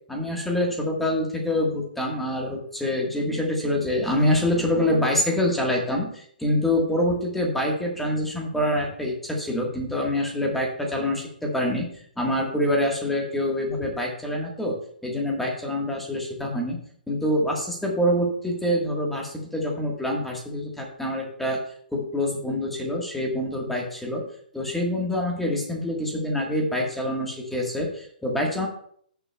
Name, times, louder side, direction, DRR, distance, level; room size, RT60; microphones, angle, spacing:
voice 1, 0.1-11.9 12.2-14.8 15.0-16.8 17.1-21.6 21.9-24.2 24.5-28.7, left 1 dB, 5° left, -1 dB, 1.4 m, -26 dB
16.5 x 7.0 x 2.3 m, 0.63 s
hypercardioid pair, 160°, 5 cm